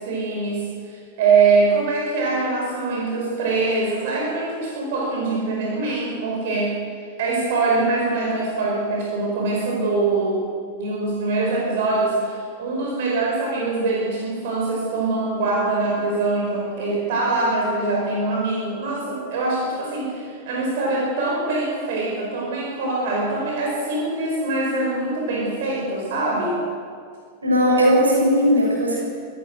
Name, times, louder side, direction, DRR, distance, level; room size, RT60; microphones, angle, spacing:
voice 1, 0.0-6.8 7.2-10.4 10.8-26.6, right 3 dB, 55° right, -2 dB, 5.3 m, -23 dB
voice 2, 27.4-29.0, equal, 80° right, -2 dB, 8.0 m, -17 dB
25.5 x 17.0 x 6.4 m, 2.1 s
figure-of-eight pair, 90°, 0 cm